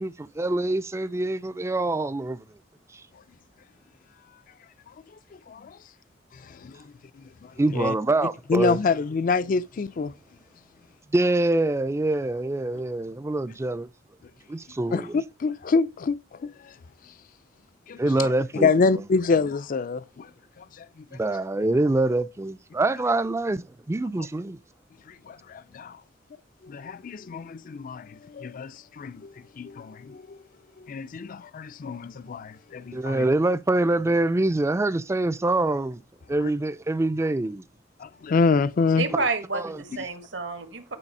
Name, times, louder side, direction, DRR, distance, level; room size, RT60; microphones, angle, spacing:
voice 1, 0.0-2.4 7.6-8.8 11.1-13.9 14.5-15.2 18.0-19.0 21.1-24.6 32.9-36.0 36.3-37.6 39.5-39.8, right 2 dB, 15° right, 0.4 m, -25 dB
voice 2, 5.5-5.8 6.5-6.7 7.7-7.9 8.5-10.1 14.9-16.7 17.9-18.3 18.5-20.3 20.6-20.7 25.3-26.0 26.6-30.4 30.9-33.3 38.0-39.1, left 4 dB, 50° left, 0.4 m, -26 dB
voice 3, 39.0-41.0, right 3 dB, 75° right, 1.4 m, -29 dB
9.9 x 4.1 x 5.3 m
head